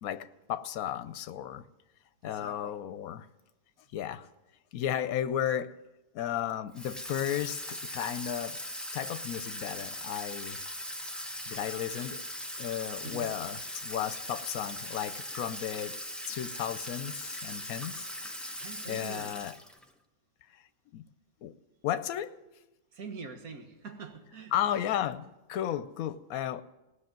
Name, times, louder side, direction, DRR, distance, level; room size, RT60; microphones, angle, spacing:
voice 1, 0.0-1.6 2.2-3.3 3.9-4.3 4.7-5.7 6.1-8.6 8.9-10.6 11.5-12.2 12.6-18.1 18.5-18.6 18.8-19.5 20.9-21.1 21.4-21.6 21.8-22.4 24.5-26.6, left 10 dB, 80° left, 1.1 m, -34 dB
voice 2, 2.2-2.7 13.0-13.3 18.6-19.4 22.9-24.5, right 5 dB, 80° right, 1.7 m, -44 dB
Water tap faucet / Sink (filling or washing), 6.7-19.9, left 1 dB, ahead, 0.7 m, -40 dB
17.0 x 6.4 x 9.1 m
omnidirectional pair, 1.5 m